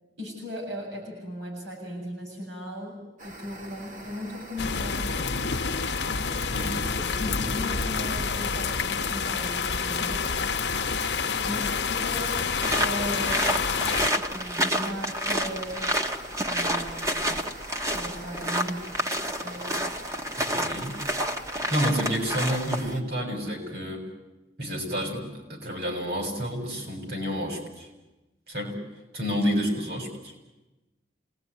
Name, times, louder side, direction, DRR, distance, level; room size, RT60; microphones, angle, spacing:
voice 1, 0.2-3.0 3.2-5.4 6.6-10.3 11.4-13.5 14.1-15.9 16.4-17.4 17.9-19.8, equal, 85° right, -1 dB, 7.9 m, -37 dB
sound 1, 3.2-23.0, right 1 dB, 45° right, 2.5 m, -44 dB
sound 2, 4.6-14.1, left 5 dB, 70° left, 1.0 m, -28 dB
voice 2, 6.5-6.8 20.5-21.0 21.7-24.1 24.6-27.9 28.5-28.8 29.1-30.3, equal, 60° right, 3 dB, 7.0 m, -29 dB
sound 3, 12.6-22.9, equal, 20° right, 1.2 m, -29 dB
28.0 x 19.5 x 9.6 m, 1.1 s
head